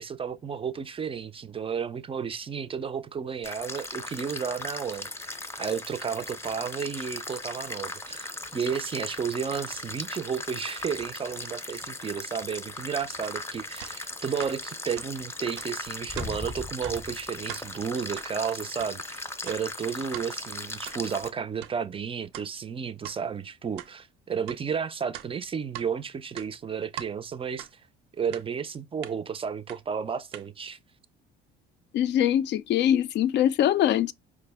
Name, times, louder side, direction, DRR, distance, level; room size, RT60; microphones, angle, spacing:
voice 1, 0.0-27.8 28.2-30.8, right 6 dB, 25° right, 0.4 m, -32 dB
sound 1, 3.4-21.3, left 2 dB, 10° left, 0.6 m, -38 dB
sound 2, 13.2-13.4 13.8-14.0 14.4-14.5 15.0-15.1 15.6-15.7 16.2-16.3 16.8-17.0 17.4-17.6 18.2-18.3 18.7-19.0 19.5-19.6 20.1-20.3 20.9-21.0 21.6-21.7 22.3-22.5 23.0-23.2 23.8-23.9 24.5-24.6 25.1-25.9 26.3-27.1 27.6-27.7 28.3-28.4 29.0-29.1 29.7-29.8 30.3-30.5, right 13 dB, 85° right, 0.5 m, -41 dB
voice 2, 31.9-34.1, left 11 dB, 60° left, 0.4 m, -23 dB
4.8 x 2.0 x 3.4 m
cardioid pair, 95°, 20 cm